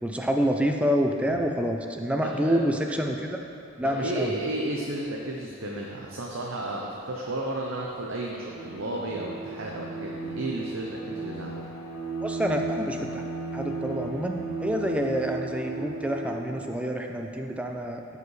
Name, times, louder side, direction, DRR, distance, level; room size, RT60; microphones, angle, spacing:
voice 1, 0.0-3.4 3.8-4.3 12.2-13.2 13.5-18.0, equal, 5° right, 2 dB, 0.4 m, -27 dB
voice 2, 2.2-2.6 3.8-11.6, right 1 dB, 65° right, -2 dB, 0.7 m, -33 dB
Bowed string instrument, 8.4-16.9, right 3 dB, 85° left, 1.3 m, -35 dB
13.0 x 4.9 x 3.2 m, 2.9 s
head